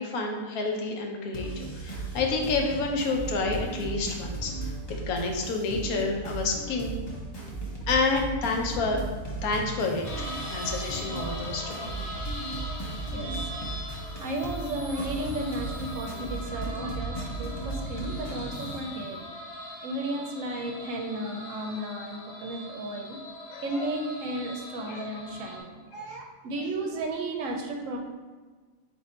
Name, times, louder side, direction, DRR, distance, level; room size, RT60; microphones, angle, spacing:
voice 1, 0.0-4.7 5.1-7.0 7.9-9.0 9.4-11.9 23.5-23.9 24.9-25.1 25.9-26.2, left 3 dB, 80° left, 2 dB, 1.1 m, -29 dB
sound 1, 1.3-18.8, right 2 dB, 30° left, 0.5 m, -36 dB
sound 2, 10.0-25.6, left 1 dB, 50° left, 1.1 m, -41 dB
voice 2, 13.1-13.5 14.2-19.3 19.8-23.2 23.6-28.0, right 1 dB, 70° right, 2 dB, 0.9 m, -34 dB
4.2 x 2.6 x 4.2 m, 1.4 s
omnidirectional pair, 1.5 m